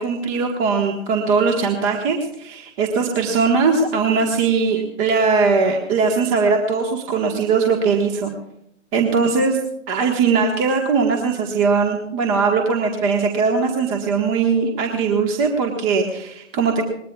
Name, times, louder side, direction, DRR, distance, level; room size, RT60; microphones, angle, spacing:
voice 1, 0.0-8.3 8.9-9.6 9.9-16.9, right 5 dB, 30° right, 2 dB, 1.5 m, -20 dB
22.0 x 20.0 x 2.4 m, 0.75 s
figure-of-eight pair, 135°, 38 cm